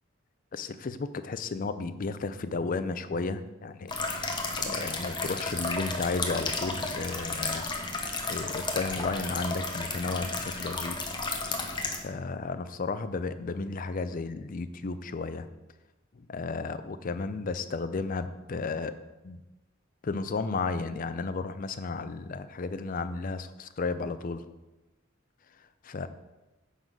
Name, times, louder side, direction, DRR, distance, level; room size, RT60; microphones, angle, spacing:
voice 1, 0.5-4.3 4.6-7.6 8.3-11.0 11.9-15.5 16.2-19.0 19.2-19.4 20.0-24.4 25.8-26.1, left 4 dB, 45° left, 12 dB, 0.5 m, -33 dB
sound 1, 3.9-12.0, left 3 dB, 25° left, 0.8 m, -33 dB
9.3 x 3.9 x 6.1 m, 1.0 s
head